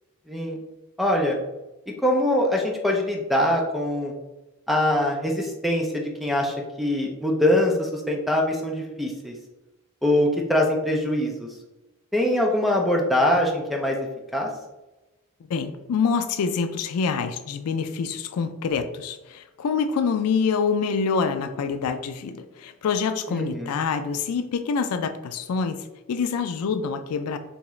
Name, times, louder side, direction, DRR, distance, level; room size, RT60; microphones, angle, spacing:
voice 1, 0.3-0.6 1.0-1.4 2.0-4.1 4.7-9.4 10.0-11.5 12.1-14.0 14.3-14.5 23.3-23.7, left 1 dB, ahead, 0 dB, 0.4 m, -23 dB
voice 2, 15.5-27.4, left 5 dB, 80° left, 9 dB, 0.3 m, -26 dB
3.5 x 2.8 x 3.1 m, 1.0 s
head